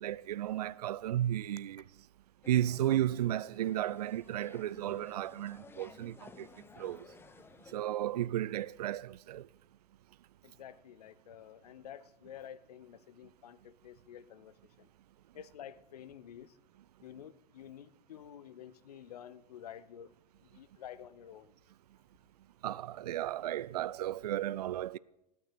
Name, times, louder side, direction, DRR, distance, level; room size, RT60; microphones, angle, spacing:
voice 1, 0.0-1.8 2.5-6.5 6.8-7.0 7.7-9.5 22.6-25.0, right 12 dB, 70° right, 0.4 m, -34 dB
sound 1, 2.4-7.7, left 5 dB, 10° left, 0.5 m, -55 dB
voice 2, 10.4-14.9 15.3-16.6 17.0-20.1 20.4-21.5, left 10 dB, 65° left, 0.8 m, -50 dB
18.5 x 6.9 x 8.4 m
figure-of-eight pair, 90°, 21 cm